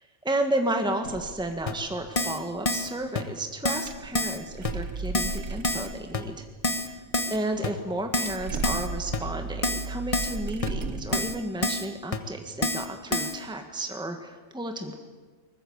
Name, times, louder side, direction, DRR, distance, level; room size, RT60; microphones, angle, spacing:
voice 1, 0.0-6.4 6.7-7.0 7.3-14.9, right 1 dB, 5° right, 5 dB, 1.6 m, -32 dB
sound 1, 1.0-2.6 3.0-3.1 3.7-7.6 7.9-11.4, right 4 dB, 80° right, 1.4 m, -36 dB
Keyboard (musical), 1.7-1.8 2.2-2.4 2.7-2.9 3.2-3.3 3.7-3.9 4.2-4.4 4.7-4.8 5.1-5.4 5.6-5.9 6.1-6.2 6.6-6.9 7.1-7.4 7.6-7.7 8.1-8.4 8.6-8.9 9.1-9.2 9.6-9.9 10.1-10.4 10.6-10.7 11.1-11.4 11.6-11.9 12.1-12.2 12.6-12.9 13.1-13.3, left 1 dB, 30° left, 1.4 m, -27 dB
23.0 x 20.0 x 8.1 m, 1.4 s
omnidirectional pair, 1.2 m